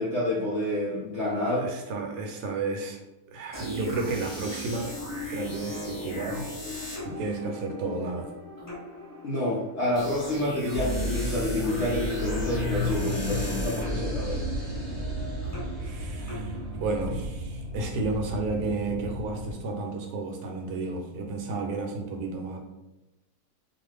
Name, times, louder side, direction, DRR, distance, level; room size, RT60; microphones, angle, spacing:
voice 1, 0.0-1.7 9.2-14.4, left 1 dB, 70° left, -5 dB, 0.6 m, -28 dB
voice 2, 1.6-3.0 3.3-5.0 5.3-6.5 7.0-8.3 15.8-22.6, right 3 dB, 80° right, 2 dB, 1.1 m, -32 dB
sound 1, 3.5-17.2, left 1 dB, 30° left, 0.3 m, -38 dB
sound 2, 10.7-19.5, equal, 50° right, 0.9 m, -32 dB
2.4 x 2.4 x 3.2 m, 1.0 s
omnidirectional pair, 1.7 m